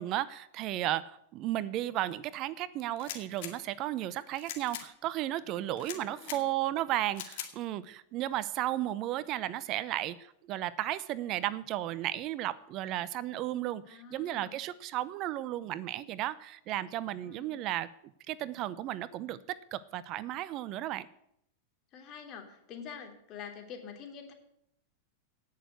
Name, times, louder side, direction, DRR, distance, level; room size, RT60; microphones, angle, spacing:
voice 1, 0.0-17.9 18.3-21.1, right 14 dB, 45° right, 17 dB, 0.6 m, -34 dB
sound 1, 3.0-3.5 4.4-4.9 5.8-6.4 7.1-7.5, left 11 dB, 60° left, 2.3 m, -41 dB
voice 2, 5.9-6.4 13.9-14.6 17.2-17.6 21.9-24.3, left 7 dB, 40° left, 4 dB, 3.3 m, -46 dB
17.0 x 6.6 x 8.1 m, 0.76 s
hypercardioid pair, 110°, 0 cm